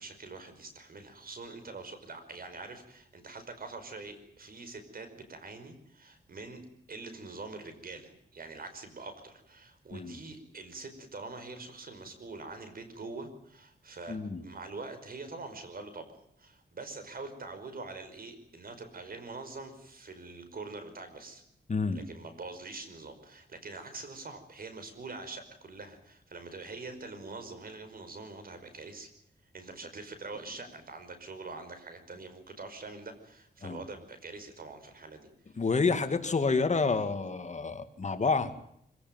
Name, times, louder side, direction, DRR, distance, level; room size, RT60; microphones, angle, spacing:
voice 1, 0.0-6.6 6.9-21.4 21.9-29.1 29.5-35.3, right 3 dB, 55° right, 9 dB, 5.3 m, -44 dB
voice 2, 14.1-14.4 21.7-22.0 33.6-33.8 35.6-38.7, left 4 dB, 40° left, 9 dB, 2.2 m, -29 dB
25.0 x 17.0 x 9.4 m, 0.73 s
cardioid pair, 85°, 18 cm